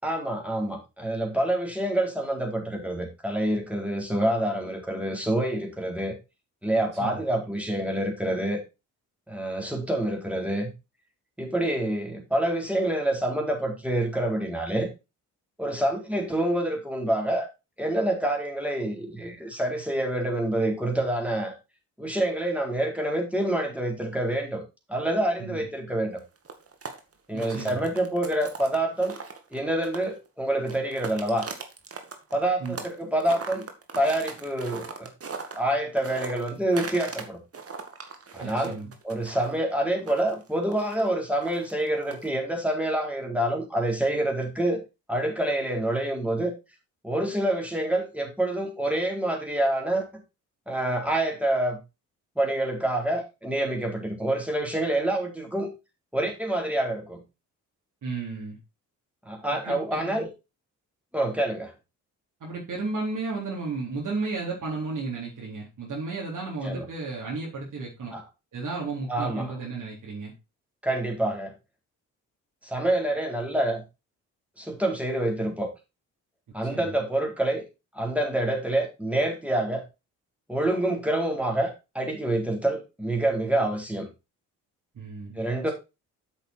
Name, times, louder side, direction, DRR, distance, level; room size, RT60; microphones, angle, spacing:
voice 1, 0.0-6.1 6.6-8.6 9.3-10.7 11.4-14.9 15.6-17.5 17.8-21.5 22.0-24.6 24.9-26.2 27.3-29.2 29.5-31.5 32.3-33.7 33.9-35.1 35.6-37.4 38.3-38.8 39.0-44.8 45.1-46.5 47.0-50.0 50.7-51.8 52.4-55.7 56.1-57.2 59.3-60.3 61.1-61.7 66.6-66.9 68.1-68.2 69.1-69.6 70.8-71.5 72.6-73.8 74.6-75.7 76.5-77.6 77.9-79.8 80.5-84.1 85.4-85.7, right 1 dB, 5° right, 1 dB, 4.1 m, -27 dB
sound 1, 26.2-30.3 30.6-32.9 33.2-37.2 37.5-42.4, right 5 dB, 40° right, 2.1 m, -39 dB
voice 2, 27.3-27.9 32.6-32.8 38.4-38.9 58.0-58.6 59.6-60.2 62.4-68.2 68.5-70.3 76.6-77.0 84.9-85.4, right 3 dB, 60° right, -4 dB, 4.0 m, -33 dB
8.3 x 6.4 x 4.5 m, 0.27 s
supercardioid pair, 60°, 35 cm